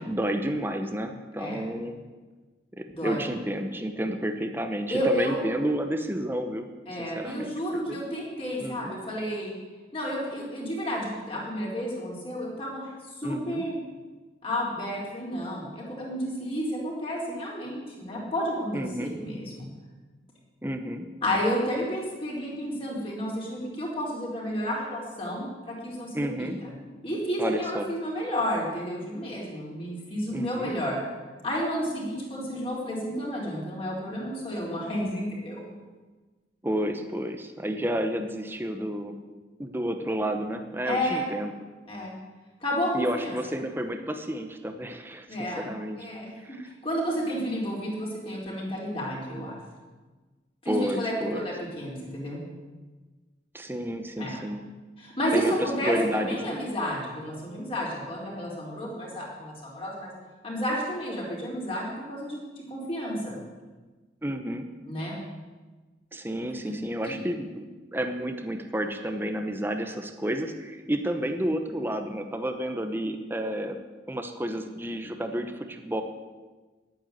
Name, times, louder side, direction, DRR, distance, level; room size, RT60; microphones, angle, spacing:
voice 1, 0.0-2.0 2.8-6.7 7.0-7.5 7.9-8.0 8.6-8.9 13.2-13.6 18.7-19.1 20.6-21.1 26.1-26.6 27.4-27.9 30.3-30.7 36.6-39.1 39.6-41.5 42.9-45.3 45.6-46.0 46.4-46.7 50.6-51.5 53.5-54.6 55.3-56.6 64.2-64.7 66.1-67.6 67.9-73.8 74.1-76.0, right 1 dB, 10° right, 6 dB, 1.0 m, -30 dB
voice 2, 2.9-3.2 4.9-5.4 6.9-9.5 9.9-12.9 13.2-13.8 14.4-19.7 21.2-26.7 27.0-31.0 31.4-35.6 40.8-41.3 41.9-42.1 42.6-43.3 45.3-49.6 50.6-52.4 54.2-54.4 55.0-60.1 60.4-63.4 64.9-65.2 66.6-66.7 67.0-67.2, equal, 30° left, -4 dB, 4.3 m, -31 dB
10.5 x 9.3 x 9.2 m, 1.3 s
head